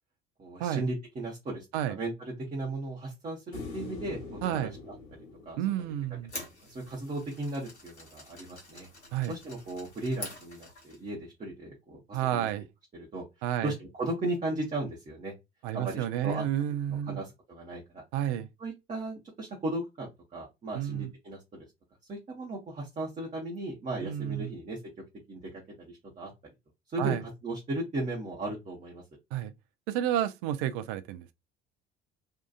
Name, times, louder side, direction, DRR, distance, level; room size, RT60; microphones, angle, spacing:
voice 1, 0.4-4.2 4.5-4.9 5.5-5.6 6.3-8.9 9.3-12.5 12.9-13.2 13.6-15.3 15.7-16.4 16.9-18.0 18.6-21.4 22.1-24.8 25.3-25.5 25.8-26.3 26.9-27.2 27.4-29.0, right 2 dB, 20° right, 0.8 m, -36 dB
sound 1, 3.5-6.8 9.4-9.5, left 3 dB, 55° left, 1.3 m, -43 dB
voice 2, 4.4-4.7 5.6-6.3 9.1-9.3 12.1-12.7 13.4-13.7 15.6-17.2 18.1-18.5 20.7-21.1 24.0-24.5 27.0-27.2 29.3-29.5 29.9-31.3, right 11 dB, 50° right, 0.4 m, -30 dB
sound 2, 6.0-11.1, left 2 dB, 90° left, 0.7 m, -46 dB
2.7 x 2.3 x 2.3 m
figure-of-eight pair, 60°, 33 cm